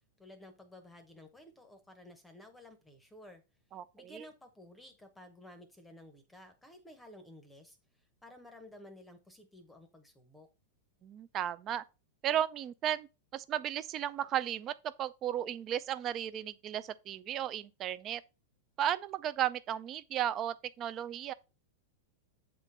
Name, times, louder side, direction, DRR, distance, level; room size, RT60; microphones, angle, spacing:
voice 1, 0.2-3.4 3.9-10.5, left 1 dB, 5° left, 0.9 m, -54 dB
voice 2, 3.7-4.2 11.0-11.8 12.2-13.1 13.3-18.2 18.8-21.3, right 10 dB, 30° right, 0.5 m, -34 dB
8.1 x 3.8 x 4.2 m
supercardioid pair, 150°, 0 cm